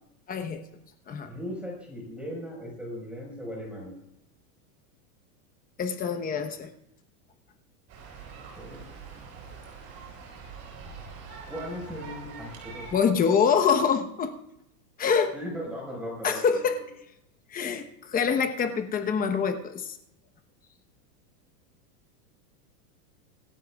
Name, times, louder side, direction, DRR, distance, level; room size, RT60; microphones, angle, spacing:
voice 1, 0.3-0.6 1.1-1.3 5.8-6.7 12.9-14.3 15.0-15.3 16.2-16.7 17.5-20.0, left 6 dB, 20° left, 7 dB, 1.0 m, -25 dB
voice 2, 1.2-3.9 8.5-8.9 11.5-13.1 15.3-16.6, equal, 5° right, -1 dB, 4.9 m, -38 dB
sound 1, 7.9-12.9, right 5 dB, 35° right, 6.9 m, -44 dB
26.5 x 13.0 x 2.4 m, 0.82 s
supercardioid pair, 150°, 47 cm